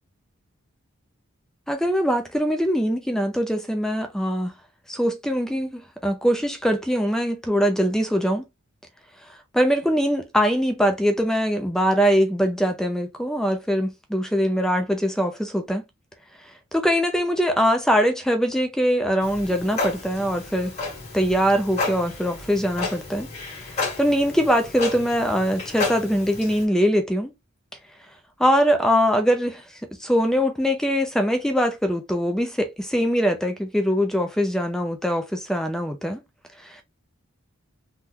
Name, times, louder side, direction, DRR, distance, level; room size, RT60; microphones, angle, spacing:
voice 1, 1.7-4.5 4.9-8.4 9.5-15.8 16.7-20.7 21.1-23.3 24.0-27.3 28.4-29.6 30.0-36.2 36.6-36.8, equal, 5° left, 0.4 m, -22 dB
Clock, 19.2-26.6, left 3 dB, 30° left, 1.5 m, -32 dB
3.6 x 2.2 x 2.9 m
head